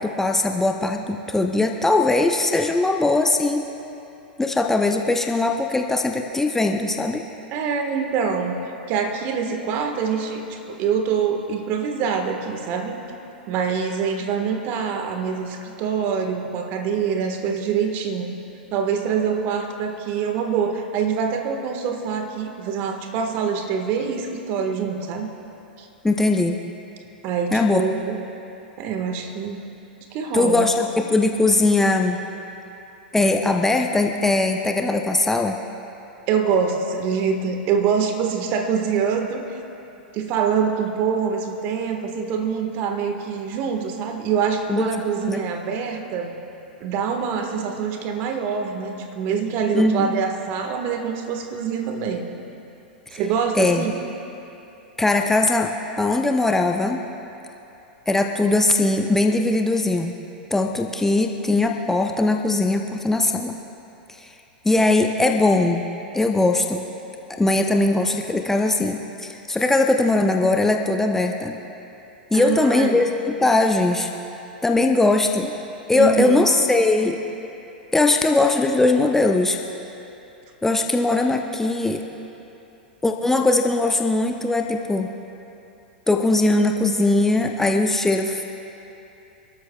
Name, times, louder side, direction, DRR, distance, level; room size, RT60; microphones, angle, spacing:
voice 1, 0.0-3.7 4.4-7.3 26.0-26.6 27.5-27.8 30.3-32.2 33.1-35.5 44.7-44.9 45.3-45.4 49.7-50.1 53.1-53.2 53.5-53.9 55.0-57.0 58.1-60.2 60.5-63.5 64.2-64.3 64.6-65.8 66.1-66.8 67.3-71.6 72.3-74.1 74.6-75.6 75.9-77.2 77.9-79.6 80.6-82.0 83.0-85.1 86.1-88.5, left 2 dB, 5° left, 3 dB, 0.7 m, -20 dB
voice 2, 7.5-13.0 13.5-18.3 18.7-25.3 25.8-25.9 27.2-28.2 28.8-29.7 30.1-30.7 36.3-39.6 40.1-46.4 46.8-52.3 53.1-53.9 72.3-73.0 75.9-76.5, right 6 dB, 40° right, 4 dB, 1.6 m, -25 dB
29.5 x 13.0 x 2.4 m, 2.9 s
figure-of-eight pair, 95°, 5 cm